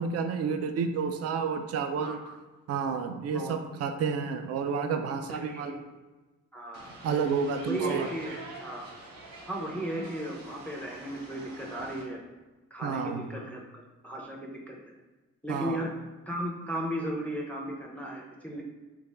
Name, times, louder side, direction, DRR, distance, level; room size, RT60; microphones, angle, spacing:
voice 1, 0.0-2.2 2.7-5.8 7.0-8.1 12.8-13.2 15.5-15.8, right 5 dB, 55° right, 7 dB, 0.4 m, -30 dB
voice 2, 2.0-2.4 3.3-3.6 5.3-5.7 6.5-6.9 7.6-8.3 8.6-8.9 9.5-12.2 12.7-14.9 15.4-15.9 16.3-18.6, right 1 dB, 5° left, -2 dB, 0.5 m, -36 dB
sound 1, 6.7-12.0, right 2 dB, 85° right, 1.1 m, -43 dB
3.4 x 2.4 x 3.2 m, 1.2 s
cardioid pair, 90°, 30 cm